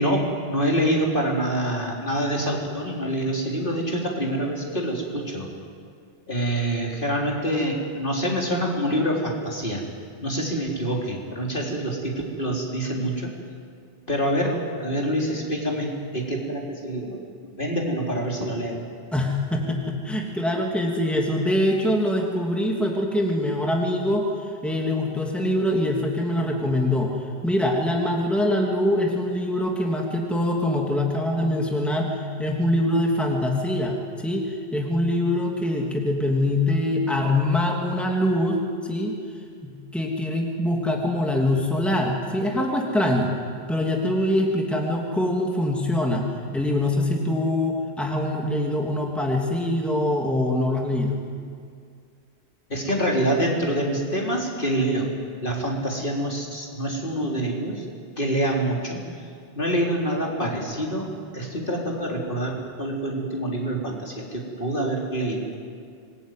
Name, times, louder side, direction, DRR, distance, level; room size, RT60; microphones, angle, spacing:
voice 1, 0.0-5.5 6.3-9.8 10.2-13.3 14.1-17.2 17.6-18.8 52.7-55.1 55.4-57.8 58.2-59.0 59.6-65.4, right 1 dB, 50° left, -1 dB, 4.1 m, -26 dB
voice 2, 19.1-24.3 24.6-27.1 27.4-39.2 39.6-43.3 43.7-46.2 46.5-51.1, left 1 dB, ahead, 0 dB, 3.0 m, -24 dB
26.0 x 21.5 x 9.4 m, 2.2 s
omnidirectional pair, 1.1 m